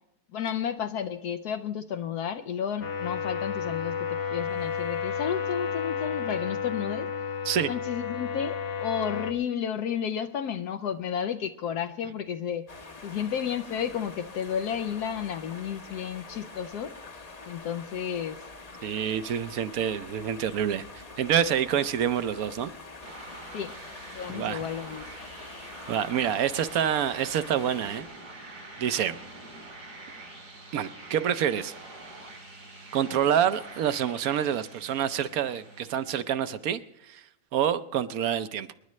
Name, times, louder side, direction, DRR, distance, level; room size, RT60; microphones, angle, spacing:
voice 1, 0.3-7.1 7.7-12.6 13.0-16.9 17.5-18.4 23.5-23.7 24.1-25.1, left 8 dB, 80° left, 1.2 m, -32 dB
sound 1, 2.8-9.3, left 7 dB, 50° left, 1.3 m, -32 dB
sound 2, 12.7-28.0, left 3 dB, 30° left, 0.8 m, -45 dB
voice 2, 18.8-22.7 24.3-24.7 25.9-28.0 28.8-29.2 30.7-31.7 32.9-37.3 37.5-38.7, right 9 dB, 70° right, 1.1 m, -27 dB
sound 3, 23.0-36.7, right 2 dB, 85° right, 4.3 m, -45 dB
27.0 x 10.5 x 3.1 m
omnidirectional pair, 1.7 m